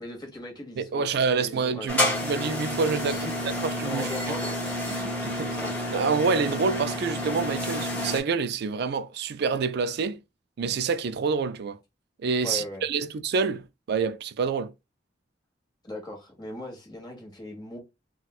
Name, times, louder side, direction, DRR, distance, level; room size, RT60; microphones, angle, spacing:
voice 1, 0.0-1.9 3.0-3.4 3.9-4.5 12.4-12.8 15.8-17.8, left 1 dB, 25° left, 1.1 m, -38 dB
voice 2, 0.8-4.4 4.9-10.2 10.6-11.8 12.2-14.7, right 5 dB, 60° right, 0.4 m, -27 dB
sound 1, 1.9-8.2, left 1 dB, 10° left, 1.3 m, -29 dB
4.1 x 2.2 x 2.3 m
head